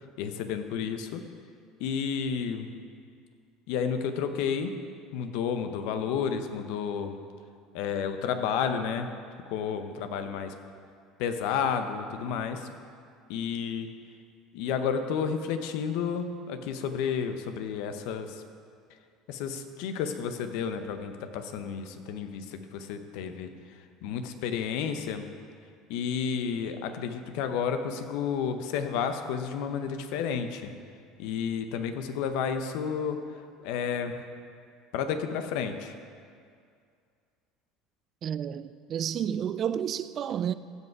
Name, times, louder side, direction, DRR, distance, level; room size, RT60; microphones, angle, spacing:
voice 1, 0.2-1.2 1.8-2.7 3.7-4.8 5.1-7.2 7.7-9.1 9.5-10.6 11.2-12.7 13.3-13.9 14.5-18.4 19.3-25.3 25.9-30.7 31.2-34.2 34.9-36.0, left 7 dB, 75° left, 0.8 m, -31 dB
voice 2, 38.2-40.5, right 9 dB, 45° right, 0.3 m, -31 dB
15.5 x 5.6 x 4.6 m
supercardioid pair, 100°, 0 cm